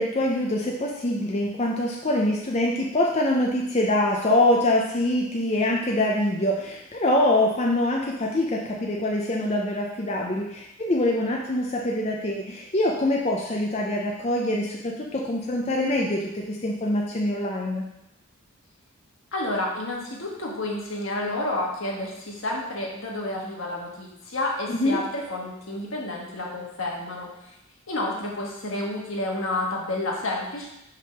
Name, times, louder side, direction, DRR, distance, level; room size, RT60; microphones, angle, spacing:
voice 1, 0.0-17.8 24.7-25.0, left 1 dB, 30° left, -2 dB, 0.6 m, -24 dB
voice 2, 19.3-27.5 27.9-30.7, left 2 dB, 70° left, -2 dB, 1.5 m, -30 dB
5.7 x 3.6 x 5.9 m, 0.85 s
head